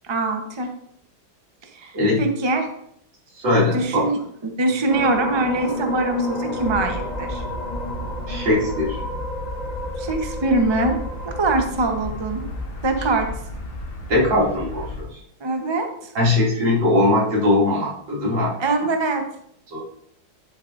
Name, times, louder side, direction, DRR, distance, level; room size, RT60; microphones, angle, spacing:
voice 1, 0.0-0.7 1.7-2.7 3.7-4.2 4.6-7.4 10.0-11.0 11.2-12.5 12.8-13.3 15.4-16.1 18.6-19.2, right 2 dB, 30° right, 4 dB, 0.4 m, -23 dB
voice 2, 3.4-4.1 8.3-9.0 14.1-15.2 16.1-18.5 19.7-19.8, left 1 dB, 70° right, -5 dB, 3.4 m, -20 dB
sound 1, 4.9-13.3, left 1 dB, 55° left, 0.4 m, -32 dB
sound 2, 6.5-15.0, equal, 35° left, 1.4 m, -33 dB
10.5 x 7.1 x 2.6 m, 0.69 s
omnidirectional pair, 2.1 m